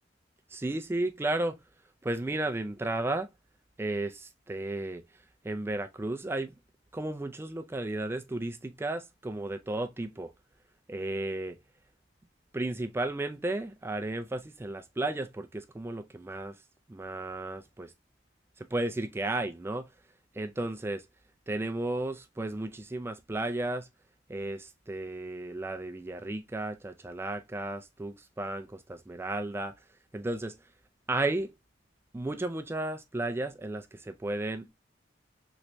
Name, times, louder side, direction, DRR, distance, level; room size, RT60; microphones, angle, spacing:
voice 1, 0.5-1.6 2.0-3.3 3.8-5.0 5.4-6.5 6.9-10.3 10.9-11.6 12.5-16.6 16.9-17.9 18.7-19.8 20.3-21.0 21.5-23.9 24.3-29.7 30.1-30.6 31.1-31.5 32.1-34.7, right 2 dB, 15° right, 0.3 m, -33 dB
3.1 x 3.0 x 2.6 m
head